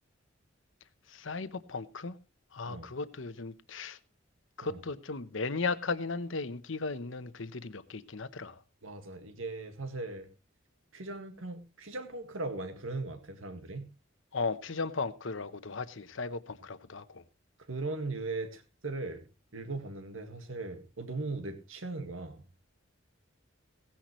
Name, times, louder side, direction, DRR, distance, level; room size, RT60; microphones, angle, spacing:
voice 1, 1.1-2.1 2.5-4.0 4.6-8.6 14.3-17.2, left 4 dB, 70° left, 0.9 m, -36 dB
voice 2, 8.8-10.3 10.9-13.9 17.7-19.3 19.5-22.4, right 3 dB, 85° right, 1.8 m, -38 dB
17.0 x 10.5 x 3.1 m
head